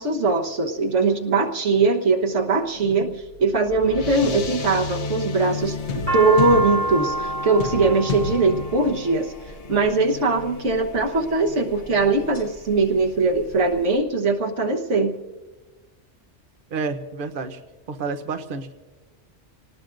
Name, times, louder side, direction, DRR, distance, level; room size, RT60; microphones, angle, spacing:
voice 1, 0.0-3.1 3.4-9.3 9.7-15.1, right 3 dB, 90° right, 3 dB, 1.6 m, -21 dB
sound 1, 2.8-13.6, left 4 dB, 70° left, 1.2 m, -33 dB
voice 2, 2.8-3.2 16.7-17.6 17.9-18.7, right 4 dB, 50° right, 7 dB, 1.0 m, -30 dB
sound 2, 5.6-9.9 10.7-11.2 11.8-12.4 12.8-12.9 13.0-13.9, right 1 dB, 45° left, 4.7 m, -27 dB
27.5 x 19.0 x 2.6 m, 1.2 s
omnidirectional pair, 1.2 m